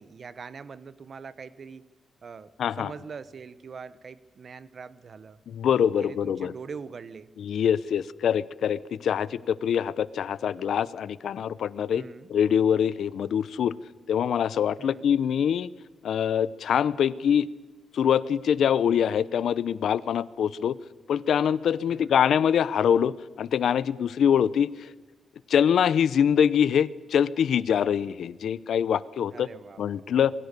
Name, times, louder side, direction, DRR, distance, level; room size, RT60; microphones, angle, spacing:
voice 1, 0.0-1.9 2.2-5.4 6.0-7.3 11.9-12.3 14.8-15.1 21.9-22.2 29.3-30.2, right 5 dB, 45° right, 16 dB, 1.1 m, -43 dB
voice 2, 2.6-2.9 5.5-6.5 7.4-13.7 14.1-15.7 16.0-17.5 17.9-20.8 21.1-24.9 25.5-29.5 29.8-30.3, left 8 dB, 75° left, 18 dB, 0.8 m, -24 dB
27.5 x 22.5 x 6.8 m, 1.2 s
wide cardioid pair, 135°, 0 cm